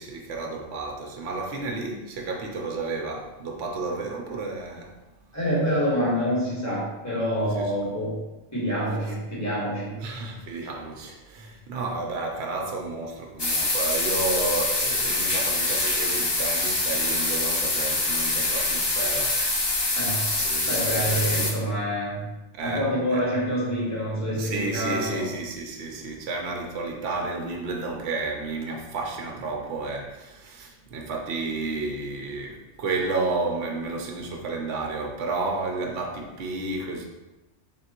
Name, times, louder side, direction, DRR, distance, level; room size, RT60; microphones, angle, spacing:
voice 1, 0.0-4.9 7.6-7.7 10.0-19.9 20.4-21.5 22.6-23.2 24.3-37.0, right 3 dB, 65° right, 1 dB, 0.8 m, -32 dB
voice 2, 5.3-8.2 8.5-10.0 19.9-20.3 20.7-22.3 22.6-25.2, equal, 15° left, -7 dB, 1.2 m, -26 dB
sound 1, 13.4-21.5, left 2 dB, 40° left, 0.3 m, -25 dB
3.8 x 3.5 x 2.9 m, 1.1 s
omnidirectional pair, 1.3 m